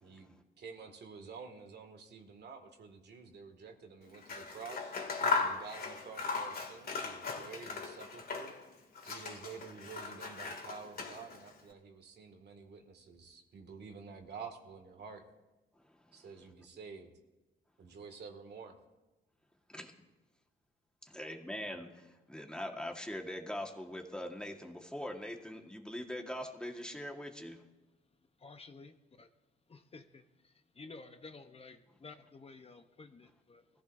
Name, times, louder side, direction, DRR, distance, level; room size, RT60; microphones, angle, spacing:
voice 1, 0.0-4.9 5.4-8.5 9.0-15.2 16.1-17.1 17.8-18.8, right 5 dB, 55° right, 4 dB, 2.2 m, -49 dB
Scissors, 4.1-8.7 8.9-11.5, left 4 dB, 50° left, 2.5 m, -38 dB
voice 2, 21.1-27.6, left 1 dB, 5° left, 2 dB, 1.6 m, -42 dB
voice 3, 28.4-28.9 29.2-29.3 29.7-30.0 30.8-31.8 32.0-33.6, left 3 dB, 30° left, 7 dB, 0.9 m, -51 dB
21.0 x 15.0 x 2.7 m, 1.0 s
cardioid pair, 90°, 20 cm